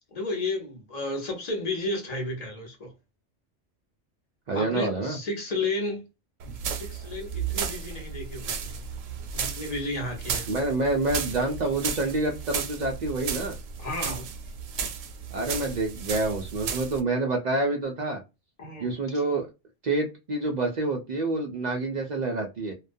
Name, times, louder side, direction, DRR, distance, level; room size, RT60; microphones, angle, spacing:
voice 1, 0.1-2.9 4.5-6.0 6.7-8.9 9.3-10.5 13.8-14.3 18.6-18.9, left 2 dB, 40° left, 0.8 m, -32 dB
voice 2, 4.5-5.2 10.5-13.6 15.3-18.2 18.8-19.5 19.8-22.7, right 2 dB, 60° right, 0.4 m, -27 dB
sound 1, 6.4-17.0, right 7 dB, 85° right, 0.9 m, -34 dB
2.3 x 2.1 x 2.5 m
omnidirectional pair, 1.2 m